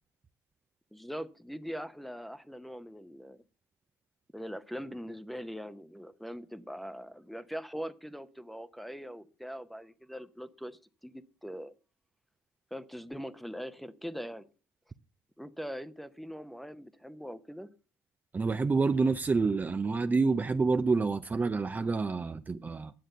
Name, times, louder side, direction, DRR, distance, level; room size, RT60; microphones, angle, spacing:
voice 1, 0.9-3.4 4.3-11.7 12.7-14.4 15.4-17.7, equal, ahead, 1.0 m, -42 dB
voice 2, 18.3-22.9, right 4 dB, 20° right, 0.6 m, -28 dB
10.5 x 7.5 x 6.7 m
supercardioid pair, 80°, 8 cm